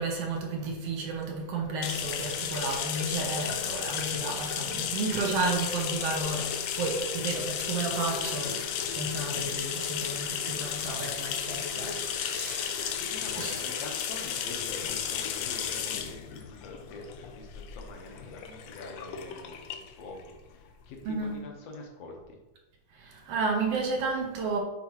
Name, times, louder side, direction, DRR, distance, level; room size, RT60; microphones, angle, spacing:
voice 1, 0.0-13.0 13.4-13.6 21.0-21.5 23.0-24.6, right 3 dB, 70° right, 1.5 m, -32 dB
sound 1, 1.8-21.2, left 8 dB, 85° left, 1.5 m, -34 dB
voice 2, 12.9-22.4, left 2 dB, 65° left, 1.9 m, -45 dB
9.7 x 4.4 x 3.0 m
omnidirectional pair, 3.6 m